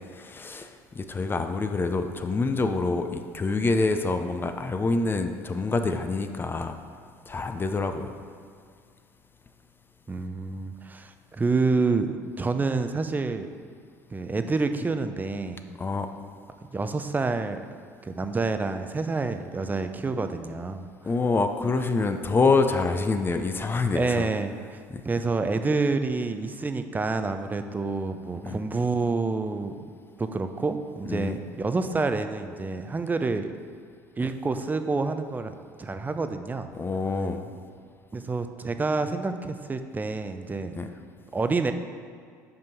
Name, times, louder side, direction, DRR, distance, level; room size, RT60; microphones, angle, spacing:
voice 1, 0.1-6.8 7.3-8.1 15.8-16.1 21.0-24.3 24.9-25.0 28.4-28.6 31.0-31.4 34.2-34.3 36.7-37.5 40.7-40.9, left 3 dB, 25° left, 7 dB, 0.6 m, -26 dB
voice 2, 10.1-13.5 14.1-15.6 16.7-17.7 18.0-20.8 23.9-29.7 30.2-33.5 34.2-36.7 38.1-40.8 41.3-41.7, right 3 dB, 20° right, 8 dB, 0.5 m, -28 dB
5.5 x 5.3 x 5.8 m, 2.2 s
hypercardioid pair, 65°, 9 cm